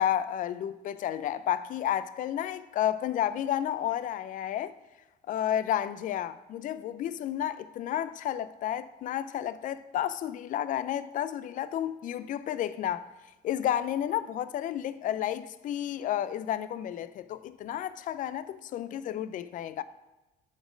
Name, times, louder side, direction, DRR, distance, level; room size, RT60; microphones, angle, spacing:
voice 1, 0.0-4.7 5.3-13.1 13.4-19.8, left 11 dB, 50° left, 0.4 m, -31 dB
7.9 x 4.3 x 5.0 m
cardioid pair, 110°, 17 cm